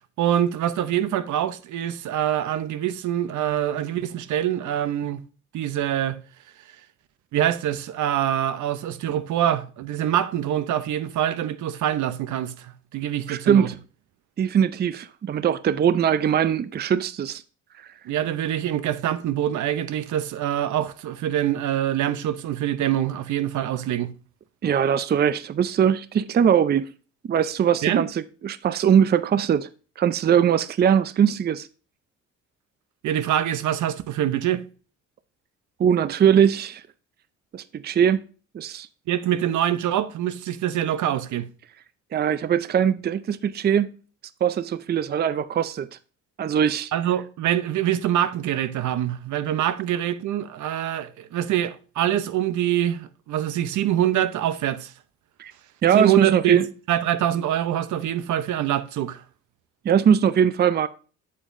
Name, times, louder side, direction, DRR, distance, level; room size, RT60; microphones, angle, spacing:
voice 1, 0.2-5.2 5.5-6.2 7.3-13.7 18.1-24.1 27.8-28.0 33.0-34.6 39.1-41.5 46.9-54.9 55.9-56.6 56.9-59.2, right 11 dB, 75° right, 0.7 m, -25 dB
voice 2, 13.3-13.7 14.4-17.4 24.6-26.9 27.2-29.7 30.0-31.7 35.8-36.8 37.5-38.2 38.5-38.9 42.1-43.9 44.4-45.9 46.4-46.9 55.4-55.5 55.8-56.7 59.8-60.9, right 8 dB, 35° right, 0.4 m, -21 dB
8.5 x 7.3 x 2.6 m
cardioid pair, 90°, 30 cm